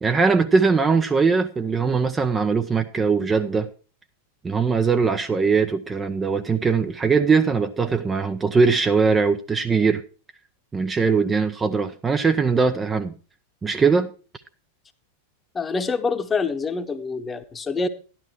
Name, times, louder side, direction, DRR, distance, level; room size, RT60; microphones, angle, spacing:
voice 1, 0.0-3.7 4.4-10.0 10.7-13.1 13.6-14.1, right 5 dB, 15° right, 0.6 m, -21 dB
voice 2, 15.5-17.9, left 4 dB, 15° left, 1.1 m, -26 dB
11.5 x 11.5 x 3.0 m
figure-of-eight pair, 90°, 0 cm